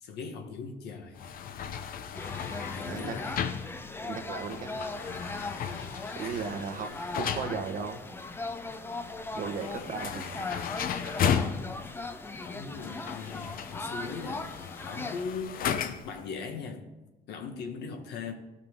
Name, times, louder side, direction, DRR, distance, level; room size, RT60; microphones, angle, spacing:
voice 1, 0.0-1.2 2.7-3.4 6.2-6.4 7.4-7.6 12.5-14.5 14.8-16.9 17.3-18.3, left 5 dB, 80° left, 4 dB, 1.5 m, -39 dB
sound 1, 1.2-16.2, left 8 dB, 55° left, 0.7 m, -36 dB
sound 2, 2.1-15.2, left 2 dB, 15° left, 0.6 m, -39 dB
voice 2, 2.7-3.1 4.0-4.7 6.2-6.9 7.2-8.0 9.3-10.4, right 5 dB, 55° right, 6 dB, 1.2 m, -36 dB
16.0 x 5.9 x 3.7 m, 1.1 s
cardioid pair, 110°, 17 cm